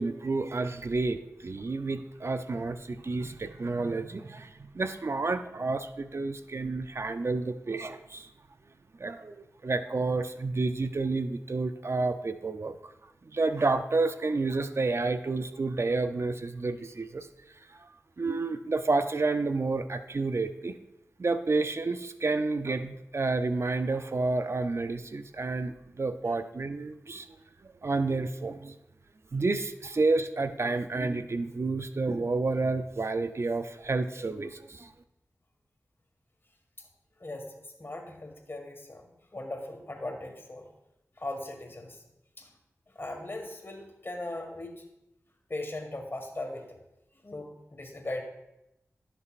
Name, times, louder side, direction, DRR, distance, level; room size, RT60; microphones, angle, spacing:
voice 1, 0.0-8.3 9.0-9.4 9.6-12.9 13.3-17.3 17.8-17.9 18.2-20.8 21.2-27.3 27.8-28.7 29.3-34.9, right 3 dB, 50° right, 10 dB, 0.5 m, -30 dB
voice 2, 37.2-40.7 41.2-42.0 42.4-42.5 42.9-44.8 45.5-46.8 47.2-48.2, left 2 dB, 40° left, 3 dB, 1.7 m, -39 dB
12.0 x 6.7 x 2.5 m, 0.88 s
cardioid pair, 40°, 6 cm